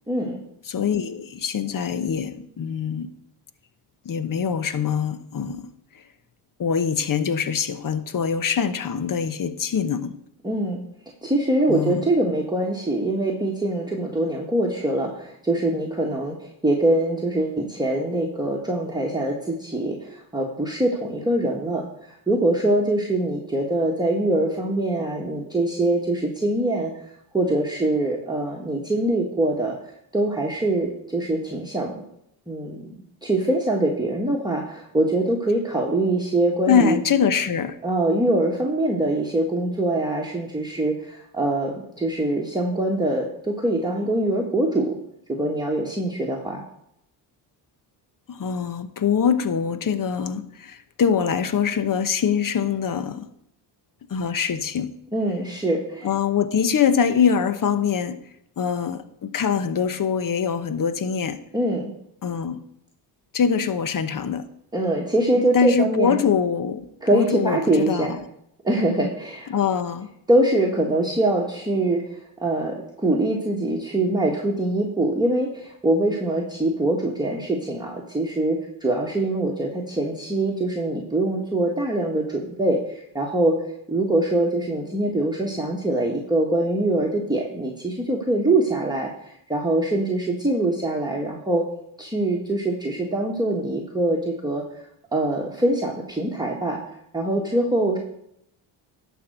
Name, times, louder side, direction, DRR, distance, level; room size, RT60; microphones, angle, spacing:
voice 1, 0.1-0.4 10.4-10.8 11.2-29.8 30.1-32.0 32.5-32.9 33.2-37.0 37.8-45.0 45.3-46.6 55.1-56.1 61.5-61.9 64.7-66.2 67.0-68.2 68.6-69.5 70.3-83.6 83.9-91.6 92.0-94.6 95.1-96.8 97.1-98.0, right 1 dB, 10° right, -1 dB, 1.6 m, -23 dB
voice 2, 0.7-3.1 4.0-5.7 5.9-6.0 6.6-10.1 11.7-12.1 36.7-37.8 48.3-53.3 54.1-54.9 56.0-58.2 58.6-61.4 62.2-62.6 63.3-64.4 65.4-68.2 69.5-70.1, left 7 dB, 40° left, 12 dB, 1.0 m, -23 dB
11.5 x 4.6 x 6.6 m, 0.75 s
supercardioid pair, 70°, 50 cm